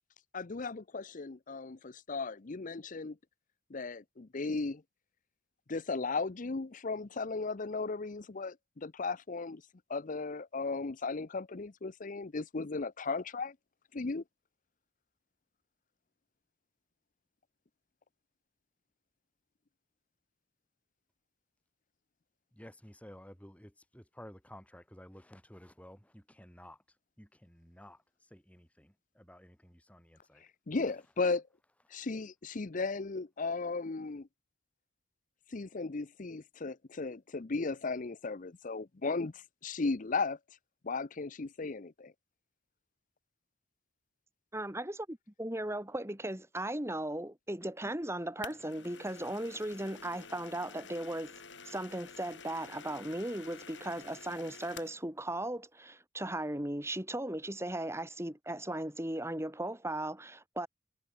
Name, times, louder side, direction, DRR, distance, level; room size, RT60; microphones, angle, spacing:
voice 1, 0.3-3.2 3.7-4.8 5.7-9.6 9.9-13.6 13.9-14.2 30.7-31.4 31.9-34.3 35.5-40.4 40.8-42.1, left 3 dB, 45° left, 0.7 m, -36 dB
voice 2, 22.5-26.8 27.2-28.0 28.3-30.4, equal, 5° left, 2.8 m, -53 dB
voice 3, 44.5-51.3 51.6-60.7, right 1 dB, 15° right, 3.3 m, -37 dB
sound 1, 48.4-55.0, left 5 dB, 65° left, 4.6 m, -50 dB
head